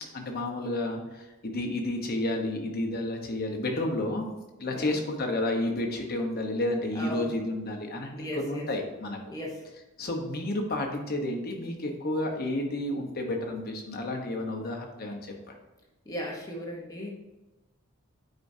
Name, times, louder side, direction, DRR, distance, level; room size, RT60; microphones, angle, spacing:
voice 1, 0.1-4.2 4.6-9.2 10.0-15.2 15.5-15.6, left 1 dB, 45° left, 2 dB, 1.0 m, -31 dB
voice 2, 6.9-7.5 8.1-8.7 9.3-9.6 16.1-17.1, equal, 15° left, -2 dB, 0.9 m, -36 dB
8.7 x 4.9 x 2.7 m, 1.1 s
head